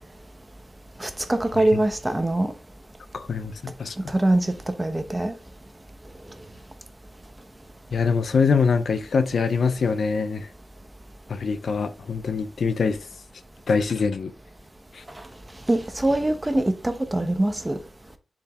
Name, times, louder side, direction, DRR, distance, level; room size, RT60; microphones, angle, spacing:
voice 1, 1.0-2.5 4.1-4.5 4.8-5.3 15.7-17.8, right 1 dB, 15° right, 1.0 m, -23 dB
voice 2, 3.1-4.0 7.9-10.5 11.3-13.0 13.7-14.3 14.9-15.0, left 5 dB, 65° left, 0.7 m, -24 dB
6.9 x 4.9 x 3.6 m
wide cardioid pair, 140°, 0 cm